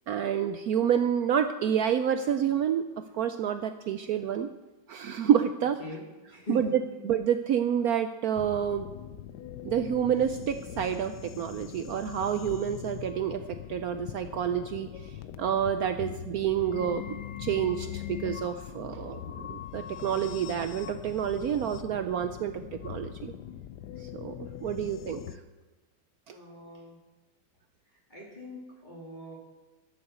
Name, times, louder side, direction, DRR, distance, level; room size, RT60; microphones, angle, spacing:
voice 1, 0.1-2.8 3.1-4.5 4.9-5.8 6.5-8.9 9.6-13.4 13.7-15.1 15.4-17.0 17.4-23.3 24.0-24.3 24.6-25.2 26.3-26.4, right 9 dB, 75° right, 9 dB, 0.9 m, -28 dB
voice 2, 5.8-6.8 18.9-19.0 26.3-27.0 27.9-29.4, left 2 dB, 25° left, -4 dB, 2.5 m, -42 dB
sound 1, 8.4-25.4, left 11 dB, 75° left, 1.2 m, -41 dB
12.5 x 7.1 x 8.0 m, 1.2 s
omnidirectional pair, 2.0 m